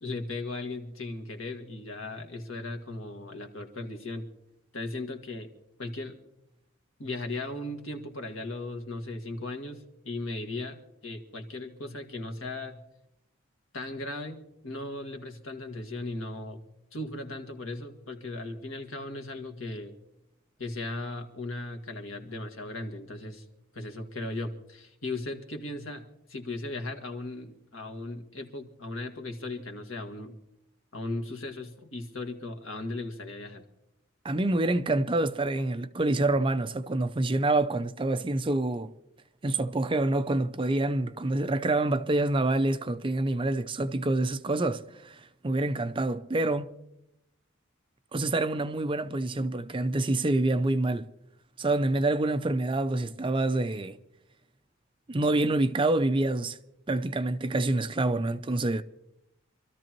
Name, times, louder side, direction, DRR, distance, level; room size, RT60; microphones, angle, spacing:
voice 1, 0.0-4.3 4.7-5.5 5.8-6.2 7.0-12.8 13.7-16.6 16.9-19.9 20.6-23.4 23.7-26.0 26.3-30.4 30.9-33.6, left 2 dB, 75° left, 1.9 m, -37 dB
voice 2, 34.2-38.9 39.4-46.8 48.1-51.1 51.6-54.0 55.1-56.6 56.9-58.8, right 2 dB, 25° right, 0.5 m, -27 dB
26.5 x 13.5 x 3.0 m
head